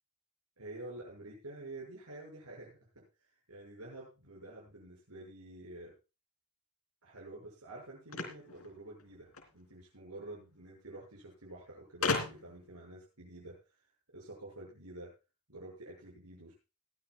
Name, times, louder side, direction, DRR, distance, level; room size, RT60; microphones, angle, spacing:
voice 1, 0.6-3.0 3.5-5.9 7.0-13.6 14.1-15.1 15.5-16.5, right 2 dB, 90° right, -3 dB, 7.0 m, -49 dB
sound 1, 8.1-9.5 10.6-10.7 10.9-11.0 12.0-12.7, left 4 dB, 70° left, 3.4 m, -35 dB
20.5 x 13.5 x 2.5 m, 0.30 s
head